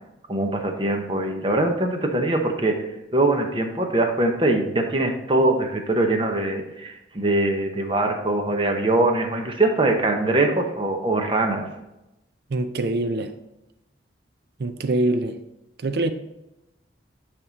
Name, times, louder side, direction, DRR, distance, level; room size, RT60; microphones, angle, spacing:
voice 1, 0.3-2.8 3.1-11.7, right 2 dB, 25° right, 3 dB, 0.8 m, -22 dB
voice 2, 12.5-13.3 14.6-15.4 15.8-16.1, right 2 dB, 55° right, 9 dB, 0.4 m, -24 dB
9.8 x 3.6 x 4.0 m, 0.94 s
head